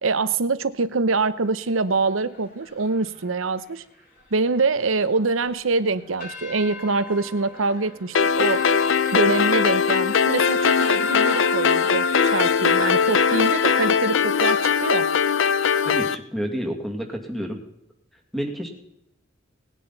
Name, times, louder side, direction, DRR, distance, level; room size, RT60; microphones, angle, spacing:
voice 1, 0.0-3.8 4.3-8.7 9.1-15.1, right 3 dB, 85° right, 14 dB, 0.8 m, -24 dB
sound 1, 1.2-14.9, left 2 dB, 45° left, 4.9 m, -42 dB
sound 2, 8.1-16.1, left 6 dB, 65° left, 0.6 m, -20 dB
voice 2, 15.8-17.6 18.3-18.7, equal, ahead, 2 dB, 2.2 m, -29 dB
19.0 x 10.0 x 4.1 m, 0.79 s
head